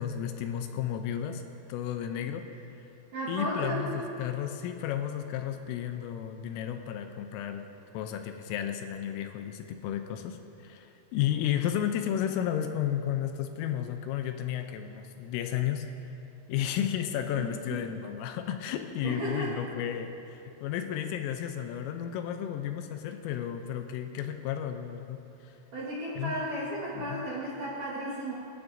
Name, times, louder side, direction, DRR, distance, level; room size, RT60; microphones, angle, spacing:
voice 1, 0.0-1.4 1.7-2.5 3.3-7.7 7.9-15.9 16.5-25.5 26.2-26.3 27.0-27.2, left 10 dB, 85° left, 6 dB, 3.1 m, -33 dB
voice 2, 3.1-4.0 17.4-17.8 19.0-19.7 25.7-28.3, right 1 dB, 65° right, -7 dB, 2.1 m, -34 dB
25.0 x 12.5 x 2.6 m, 2.8 s
omnidirectional pair, 6.0 m